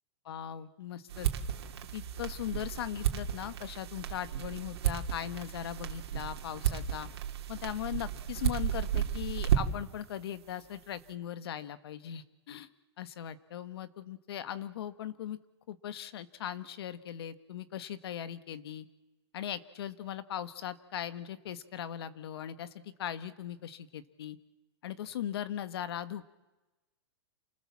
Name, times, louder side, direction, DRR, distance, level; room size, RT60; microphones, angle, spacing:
voice 1, 0.2-1.3 1.9-7.1 7.5-12.7 13.0-15.4 15.7-18.9 19.3-24.4 24.8-26.3, left 10 dB, 65° left, 13 dB, 1.4 m, -39 dB
sound 1, 1.1-9.9, right 10 dB, 70° right, 2.9 m, -33 dB
28.5 x 19.5 x 7.4 m, 1.1 s
supercardioid pair, 165°, 14 cm